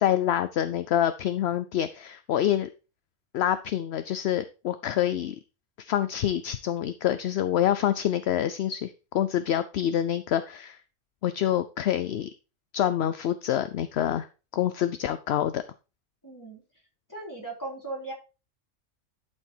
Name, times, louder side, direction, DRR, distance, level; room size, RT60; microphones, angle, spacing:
voice 1, 0.0-2.7 3.3-5.4 5.8-10.8 11.2-12.3 12.7-14.3 14.5-15.6, left 11 dB, 65° left, 12 dB, 0.8 m, -26 dB
voice 2, 16.2-16.6 17.1-18.1, right 2 dB, 15° left, -4 dB, 3.6 m, -37 dB
11.5 x 4.5 x 4.4 m, 0.31 s
omnidirectional pair, 1.4 m